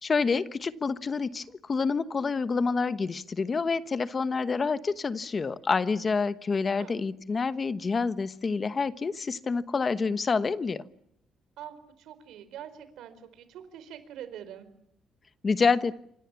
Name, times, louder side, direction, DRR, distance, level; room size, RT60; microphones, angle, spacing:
voice 1, 0.0-10.8 15.4-15.9, left 4 dB, 25° left, 13 dB, 1.1 m, -27 dB
voice 2, 11.6-14.7, right 10 dB, 80° right, 12 dB, 4.4 m, -44 dB
28.5 x 25.5 x 7.1 m, 0.73 s
cardioid pair, 155°, 0 cm